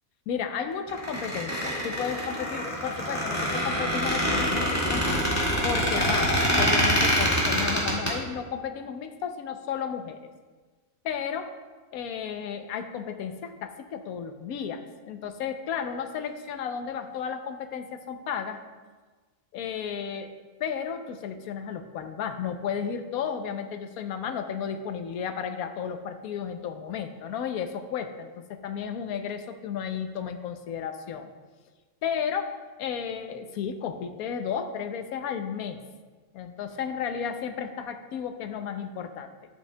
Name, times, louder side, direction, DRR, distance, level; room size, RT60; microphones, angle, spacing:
voice 1, 0.3-5.0 5.6-10.2 11.0-11.5 11.9-18.6 19.5-20.3 20.6-31.3 32.0-35.8 36.3-39.3, left 7 dB, 85° left, 8 dB, 1.1 m, -33 dB
Squeak, 0.9-8.1, equal, 10° left, 1.8 m, -25 dB
11.0 x 8.3 x 2.2 m, 1.4 s
omnidirectional pair, 1.5 m